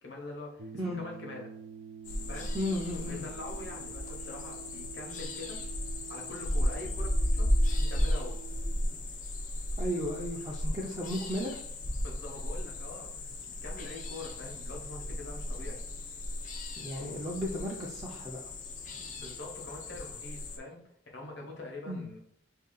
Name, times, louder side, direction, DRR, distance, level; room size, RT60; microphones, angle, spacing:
voice 1, 0.0-1.5 2.3-2.5 3.1-5.6 6.1-8.4 12.0-13.1 13.5-15.8 19.1-20.8 21.1-22.2, left 2 dB, 75° left, 0 dB, 1.0 m, -44 dB
sound 1, 0.6-8.7, right 8 dB, 80° right, 0.5 m, -48 dB
sound 2, 2.0-20.6, left 1 dB, 45° left, 0.5 m, -34 dB
voice 2, 2.5-3.3 9.8-11.6 16.8-18.4 21.9-22.0, equal, 25° right, -4 dB, 0.5 m, -34 dB
2.9 x 2.7 x 4.0 m, 0.68 s
head